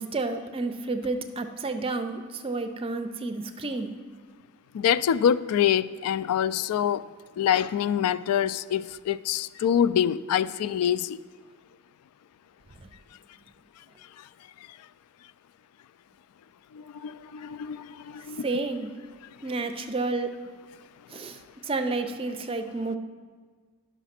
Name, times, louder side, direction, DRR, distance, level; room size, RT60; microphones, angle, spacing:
voice 1, 0.0-3.9 12.8-12.9 18.4-18.9 19.4-20.3 21.1-23.0, right 3 dB, 25° right, 7 dB, 0.5 m, -30 dB
voice 2, 4.7-7.0 7.4-11.2 16.7-18.5, left 9 dB, 85° left, 18 dB, 0.3 m, -25 dB
11.0 x 5.9 x 5.8 m, 1.5 s
head